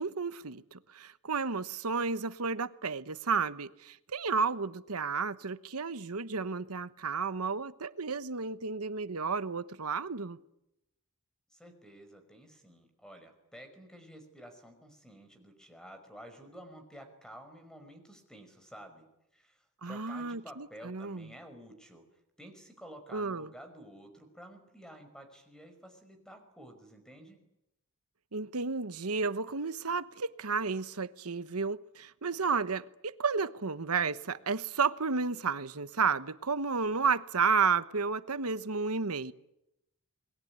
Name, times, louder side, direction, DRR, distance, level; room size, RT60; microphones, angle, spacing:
voice 1, 0.0-10.4 19.8-21.3 23.1-23.5 28.3-39.3, right 5 dB, 80° right, 1.2 m, -32 dB
voice 2, 11.5-19.0 19.3-22.1 22.4-27.4, equal, 5° left, 5.4 m, -51 dB
28.0 x 21.5 x 9.6 m
head